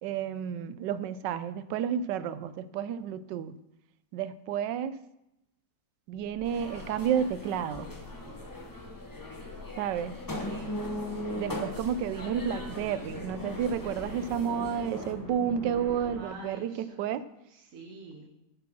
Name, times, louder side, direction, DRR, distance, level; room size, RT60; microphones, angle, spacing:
voice 1, 0.0-3.5 4.1-5.0 6.1-7.9 9.8-10.1 11.3-17.2, right 8 dB, 85° right, 14 dB, 1.2 m, -31 dB
sound 1, 6.1-16.2, left 2 dB, 70° left, 2.5 m, -45 dB
sound 2, 6.4-15.1, left 1 dB, 20° left, 0.6 m, -39 dB
voice 2, 10.3-10.9 16.1-17.0 17.5-18.3, right 2 dB, 55° right, 0 dB, 1.3 m, -47 dB
7.9 x 6.9 x 6.0 m, 0.86 s
omnidirectional pair, 1.9 m